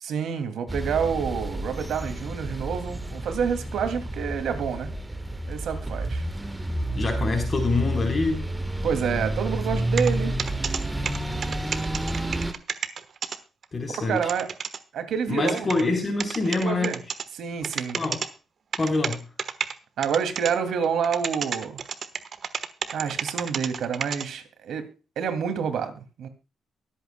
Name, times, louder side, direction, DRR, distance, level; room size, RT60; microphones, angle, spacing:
voice 1, 0.0-4.9 5.5-6.3 8.8-10.4 13.9-14.5 14.9-15.7 16.5-17.0 17.3-18.0 20.0-21.8 22.9-24.9 25.2-26.3, right 7 dB, 75° right, 8 dB, 2.5 m, -28 dB
sound 1, 0.7-12.5, right 1 dB, 10° right, 1.4 m, -30 dB
voice 2, 6.9-8.4 13.7-14.2 15.3-16.9 18.0-18.2 18.8-19.2, left 3 dB, 35° left, 3 dB, 3.9 m, -25 dB
sound 2, 10.0-10.1 10.4-10.8 11.1-13.4 13.6-13.7 13.9-14.8 15.5-15.8 16.2-17.2 17.6-18.3 18.7-19.7 20.0-20.5 20.8-24.3, right 6 dB, 55° right, 1.2 m, -30 dB
23.5 x 8.6 x 2.2 m, 0.32 s
cardioid pair, 90°, 0 cm